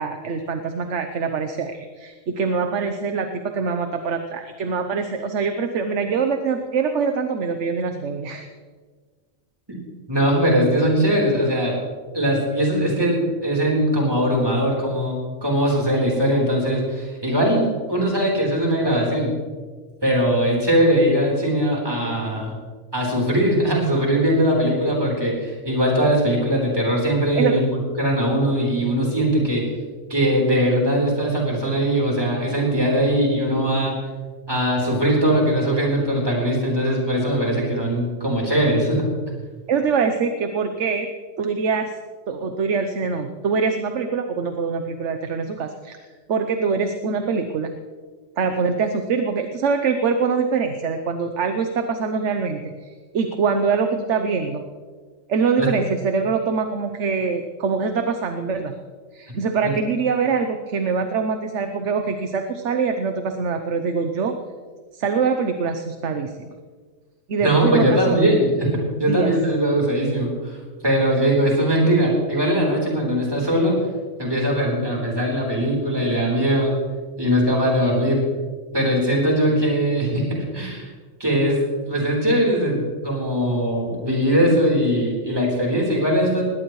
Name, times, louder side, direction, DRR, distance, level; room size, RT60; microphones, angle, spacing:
voice 1, 0.0-8.5 27.4-27.6 39.7-41.1 41.4-41.9 42.3-46.0 46.3-47.7 48.4-54.6 55.3-58.7 59.1-64.4 64.9-66.5 67.3-68.2 69.1-69.3, right 5 dB, 65° right, 6 dB, 1.2 m, -24 dB
voice 2, 10.1-11.8 12.1-19.3 20.0-22.6 22.9-27.6 28.0-29.7 30.1-34.0 34.5-39.0 55.6-55.7 59.6-59.7 67.4-70.6 70.8-73.8 74.2-76.7 77.2-78.2 78.7-80.3 80.5-80.9 81.2-81.6 81.9-86.4, equal, 20° right, -2 dB, 4.1 m, -20 dB
20.5 x 17.5 x 3.2 m, 1.5 s
omnidirectional pair, 1.4 m